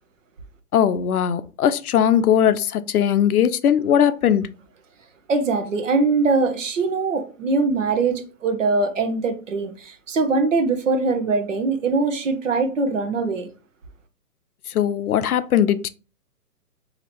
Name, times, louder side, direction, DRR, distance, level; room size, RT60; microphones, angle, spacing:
voice 1, 0.7-4.5 14.7-15.9, left 9 dB, 75° left, 0.5 m, -19 dB
voice 2, 5.3-13.5, right 3 dB, 55° right, 0.8 m, -22 dB
2.9 x 2.8 x 4.2 m
hypercardioid pair, 175°, 45 cm